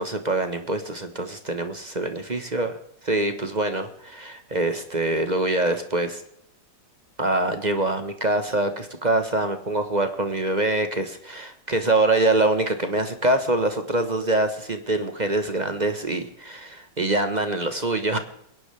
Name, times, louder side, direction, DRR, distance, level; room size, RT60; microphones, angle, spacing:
voice 1, 0.0-2.7 3.0-6.2 7.2-18.2, right 2 dB, 30° right, 7 dB, 1.0 m, -24 dB
23.5 x 11.0 x 3.4 m, 0.70 s
omnidirectional pair, 1.9 m